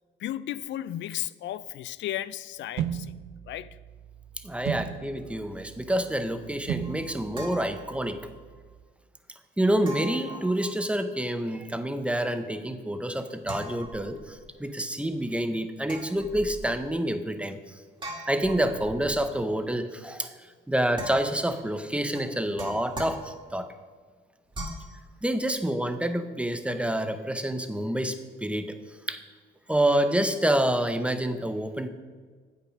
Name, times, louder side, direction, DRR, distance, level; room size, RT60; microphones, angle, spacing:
voice 1, 0.2-3.2 3.5-3.8, left 12 dB, 70° left, 0.4 m, -34 dB
sound 1, 2.8-8.8, right 10 dB, 85° right, 0.5 m, -37 dB
voice 2, 4.4-8.2 9.6-17.6 18.3-20.3 20.7-23.7 25.2-28.7 29.1-29.2 29.7-31.9, right 1 dB, 5° right, 0.7 m, -28 dB
sound 2, 6.8-8.4 9.8-11.2 13.4-14.5 15.8-16.9 18.0-19.4 20.9-21.6 22.1-23.7 24.5-25.0, equal, 25° right, 1.9 m, -41 dB
8.2 x 5.8 x 5.3 m
cardioid pair, 90°, 20 cm